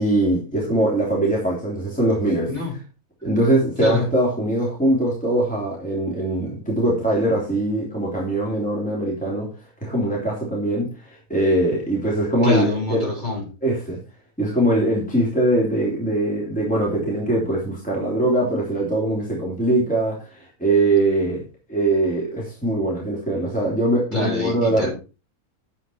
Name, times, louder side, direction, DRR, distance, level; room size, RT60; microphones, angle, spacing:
voice 1, 0.0-2.5 3.2-9.5 9.8-13.1 13.6-14.0 14.4-21.4 21.7-24.9, right 1 dB, 5° left, -4 dB, 3.2 m, -22 dB
voice 2, 12.4-13.5 24.1-24.9, left 2 dB, 30° left, -2 dB, 5.9 m, -25 dB
9.9 x 8.3 x 4.5 m, 0.33 s
omnidirectional pair, 1.5 m